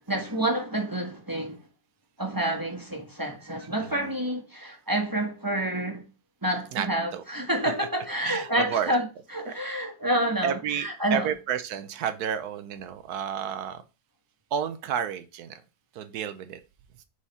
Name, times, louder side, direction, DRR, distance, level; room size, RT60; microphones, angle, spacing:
voice 1, 0.1-1.6 2.2-6.0 6.4-9.0 9.3-11.3, right 1 dB, 15° right, 1.0 m, -28 dB
voice 2, 3.8-4.1 6.7-6.9 7.1-7.2 8.2-8.9 10.4-13.8 14.5-15.6 15.9-16.6, right 8 dB, 70° right, 1.1 m, -31 dB
4.9 x 4.2 x 5.4 m
omnidirectional pair, 1.8 m